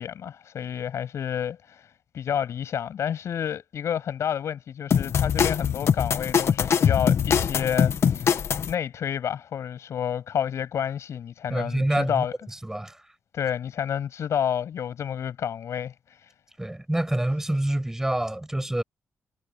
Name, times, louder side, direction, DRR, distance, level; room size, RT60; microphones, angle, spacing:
voice 1, 0.0-1.9 2.1-12.3 13.3-16.3, left 9 dB, 85° left, 7.9 m, -30 dB
sound 1, 4.9-8.7, left 7 dB, 70° left, 1.4 m, -22 dB
voice 2, 11.5-12.3 12.6-13.0 16.6-18.8, right 1 dB, 10° right, 7.5 m, -26 dB
wide cardioid pair, 130°, 5 cm